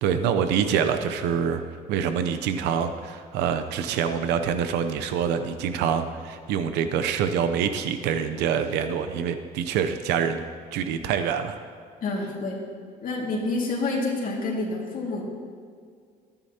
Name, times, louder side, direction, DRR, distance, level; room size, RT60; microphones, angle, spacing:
voice 1, 0.0-1.6 1.9-10.4 10.7-11.6, right 7 dB, 90° right, 9 dB, 0.7 m, -25 dB
voice 2, 12.0-12.6 13.0-15.2, left 2 dB, 55° left, -3 dB, 2.1 m, -28 dB
14.0 x 11.0 x 2.9 m, 2.1 s
cardioid pair, 110°, 17 cm